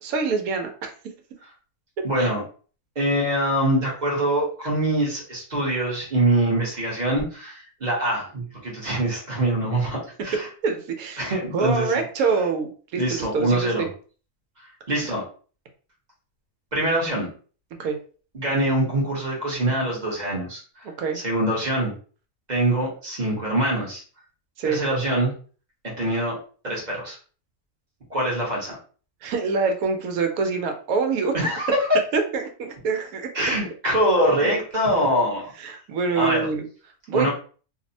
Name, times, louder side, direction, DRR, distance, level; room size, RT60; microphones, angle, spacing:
voice 1, 0.0-0.9 2.0-2.3 10.6-13.9 17.8-18.0 21.0-21.2 24.6-24.8 29.2-31.4 32.1-33.3 34.4-34.5 35.6-36.6 37.1-37.3, right 4 dB, 80° right, 4 dB, 1.0 m, -25 dB
voice 2, 2.0-2.4 2.9-10.5 11.2-12.0 13.0-13.9 14.9-15.3 16.7-17.3 18.3-20.9 21.1-21.9 22.5-24.0 24.6-25.3 25.8-26.4 26.6-27.2 28.1-28.8 31.3-32.0 33.3-35.5 36.2-36.5 37.1-37.3, right 1 dB, 35° right, -3 dB, 0.8 m, -24 dB
2.7 x 2.0 x 2.6 m, 0.40 s
omnidirectional pair, 1.5 m